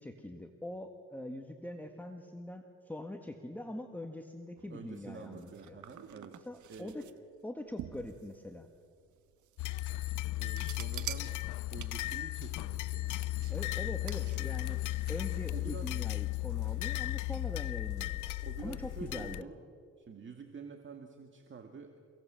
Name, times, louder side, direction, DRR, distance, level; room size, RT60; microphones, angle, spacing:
voice 1, 0.0-5.8 6.4-7.0 7.4-8.7 13.5-14.8 15.1-18.3 18.6-19.5, left 1 dB, 5° left, 4 dB, 1.7 m, -43 dB
sound 1, 4.6-15.2, right 12 dB, 75° right, 1.3 m, -49 dB
voice 2, 4.7-6.4 6.7-7.0 10.3-13.1 15.5-15.9 18.4-19.6 20.0-22.0, right 5 dB, 40° right, 4 dB, 2.1 m, -48 dB
sound 2, 9.6-19.4, left 17 dB, 85° left, 0.5 m, -35 dB
28.5 x 18.0 x 7.6 m, 2.2 s
cardioid pair, 90°, 30 cm